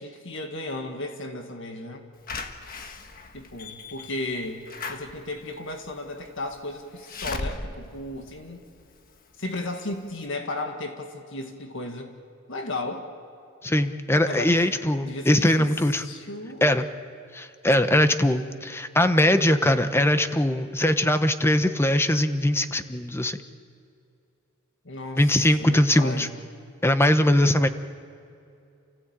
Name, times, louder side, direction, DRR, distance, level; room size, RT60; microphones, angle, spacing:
voice 1, 0.0-2.1 3.3-8.6 9.4-12.1 12.5-13.1 14.1-14.7 15.0-16.8 24.9-25.2 25.6-26.3, left 2 dB, 65° left, 4 dB, 1.8 m, -35 dB
Slam / Alarm, 2.3-9.1 9.6-9.7 9.9-10.0, left 3 dB, 45° left, 1.4 m, -38 dB
voice 2, 13.6-16.0 16.6-16.8 17.3-23.4 25.2-26.3 26.8-27.7, left 1 dB, 10° left, 9 dB, 0.9 m, -21 dB
29.0 x 15.5 x 8.8 m, 2.6 s
head